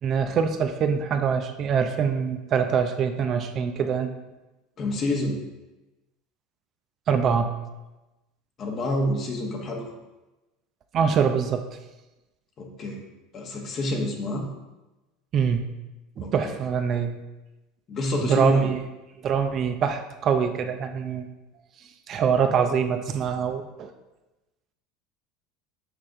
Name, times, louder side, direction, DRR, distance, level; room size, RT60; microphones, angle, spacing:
voice 1, 0.0-4.1 7.1-7.5 10.9-11.6 15.3-15.7 16.2-17.2 18.2-18.8 19.2-21.3 22.1-23.9, right 6 dB, 45° right, 7 dB, 0.5 m, -24 dB
voice 2, 4.8-5.4 8.6-9.8 12.6-13.0 13.3-14.5 16.2-16.3 17.9-18.7, equal, 40° left, 2 dB, 1.3 m, -27 dB
6.5 x 4.9 x 3.6 m, 1.1 s
hypercardioid pair, 75°, 0 cm